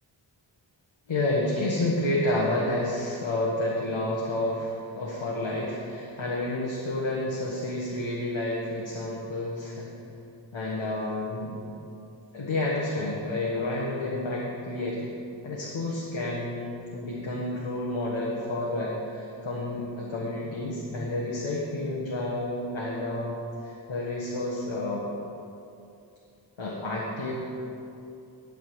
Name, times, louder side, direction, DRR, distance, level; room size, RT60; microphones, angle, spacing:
voice 1, 1.1-9.9 10.5-11.6 12.3-15.1 15.4-23.4 23.6-25.1 26.6-27.4, left 1 dB, 70° left, -5 dB, 1.5 m, -30 dB
12.0 x 4.1 x 8.0 m, 2.7 s
cardioid pair, 50°, 47 cm